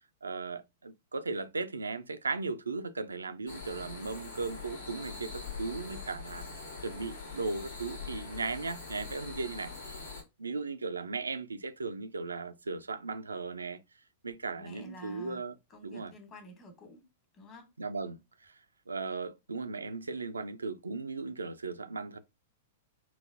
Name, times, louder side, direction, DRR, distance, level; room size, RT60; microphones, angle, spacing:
voice 1, 0.2-6.5 6.8-10.1 10.4-13.8 14.2-15.6 15.8-16.1 17.8-18.5 18.9-22.2, right 3 dB, 85° right, 0.3 m, -37 dB
sound 1, 3.5-10.2, left 4 dB, 75° left, 1.2 m, -43 dB
voice 2, 14.6-15.4 15.7-17.0 17.3-17.7, equal, 30° left, 1.1 m, -50 dB
3.9 x 2.1 x 2.4 m
hypercardioid pair, 105°, 0 cm